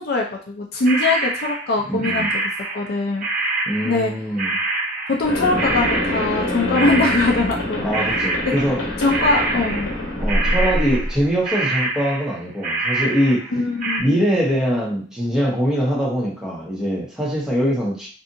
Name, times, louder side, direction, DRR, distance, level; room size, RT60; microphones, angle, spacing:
voice 1, 0.0-2.4 2.7-3.3 3.8-4.1 5.1-7.9 8.4-8.5 9.0-9.9 13.5-14.1, left 2 dB, 50° left, 0 dB, 0.4 m, -21 dB
sound 1, 0.8-7.7 7.9-10.0 10.3-11.2 11.4-14.0, right 2 dB, 40° right, 0.6 m, -25 dB
voice 2, 1.9-2.3 3.7-4.6 7.8-8.8 10.2-13.5 14.0-18.1, equal, 5° right, -5 dB, 0.9 m, -22 dB
sound 2, 5.2-11.3, left 1 dB, 80° left, 0.8 m, -25 dB
2.7 x 2.5 x 2.6 m, 0.40 s
head